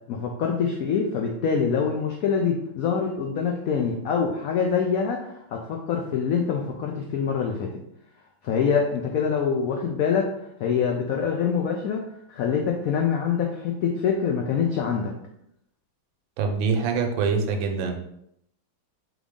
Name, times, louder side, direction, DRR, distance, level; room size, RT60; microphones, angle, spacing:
voice 1, 0.1-7.7 8.4-10.3 10.6-12.0 12.3-15.1, left 6 dB, 85° left, 1 dB, 0.7 m, -25 dB
voice 2, 16.4-18.0, right 5 dB, 80° right, 4 dB, 1.4 m, -24 dB
3.7 x 3.5 x 3.6 m, 0.78 s
omnidirectional pair, 2.1 m